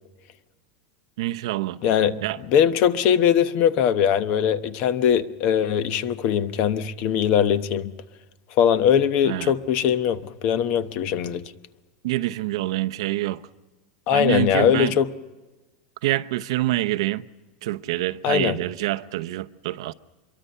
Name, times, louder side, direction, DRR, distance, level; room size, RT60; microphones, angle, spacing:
voice 1, 1.2-1.8 2.2-2.4 9.2-9.5 12.0-13.4 14.1-15.0 16.0-17.2 17.6-19.9, right 16 dB, 75° right, 0.8 m, -26 dB
voice 2, 1.8-2.2 2.5-7.9 8.6-11.4 14.1-15.1 18.2-18.6, left 9 dB, 40° left, 1.0 m, -21 dB
25.5 x 23.0 x 5.6 m
supercardioid pair, 165°, 3 cm